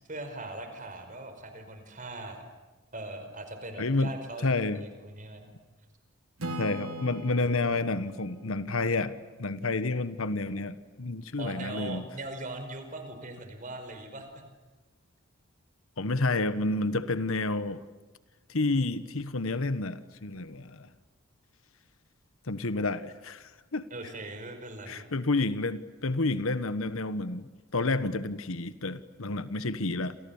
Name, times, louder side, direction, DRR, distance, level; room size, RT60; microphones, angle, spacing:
voice 1, 0.1-2.4 2.9-5.5 11.4-14.4 23.9-25.0, right 2 dB, 35° right, 7 dB, 5.0 m, -40 dB
voice 2, 3.8-4.1 4.4-4.8 6.6-12.0 16.0-17.8 18.5-20.9 22.5-23.9 24.9-30.2, left 2 dB, 70° left, 13 dB, 1.2 m, -30 dB
Acoustic guitar / Strum, 6.4-10.0, right 1 dB, 80° right, 3.3 m, -41 dB
29.0 x 28.5 x 7.2 m, 1.2 s
head